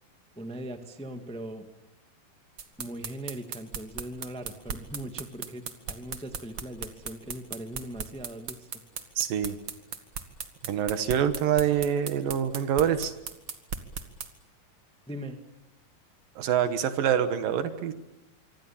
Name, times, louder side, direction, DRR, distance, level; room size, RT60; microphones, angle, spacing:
voice 1, 0.3-1.7 2.8-8.8 15.1-15.4, right 1 dB, 5° left, 6 dB, 0.9 m, -40 dB
sound 1, 2.6-14.3, right 6 dB, 40° right, 1.9 m, -36 dB
voice 2, 9.2-9.6 10.6-13.1 16.4-17.9, right 9 dB, 90° right, 10 dB, 3.2 m, -26 dB
25.5 x 25.5 x 7.4 m, 0.97 s
omnidirectional pair, 3.8 m